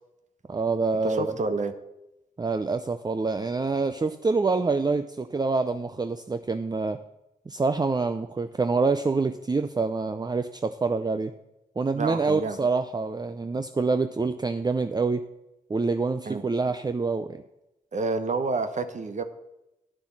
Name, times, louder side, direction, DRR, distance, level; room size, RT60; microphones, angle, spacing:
voice 1, 0.5-1.3 2.4-7.0 7.5-11.3 11.8-15.3 15.7-17.4, right 4 dB, 25° right, 10 dB, 0.5 m, -26 dB
voice 2, 1.0-1.7 12.0-12.6 16.3-16.4 17.9-19.2, right 3 dB, 50° right, 10 dB, 0.9 m, -28 dB
10.0 x 6.2 x 7.2 m, 0.92 s
cardioid pair, 60°, 15 cm